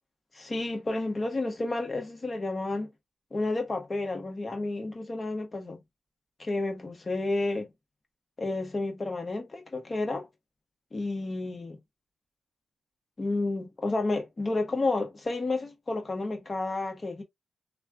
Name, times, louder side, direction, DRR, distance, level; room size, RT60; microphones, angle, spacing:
voice 1, 0.3-2.9 3.3-5.8 6.4-7.7 8.4-10.3 10.9-11.8 13.2-17.2, left 2 dB, 35° left, 1.1 m, -31 dB
3.1 x 2.2 x 2.3 m
cardioid pair, 60°, 0 cm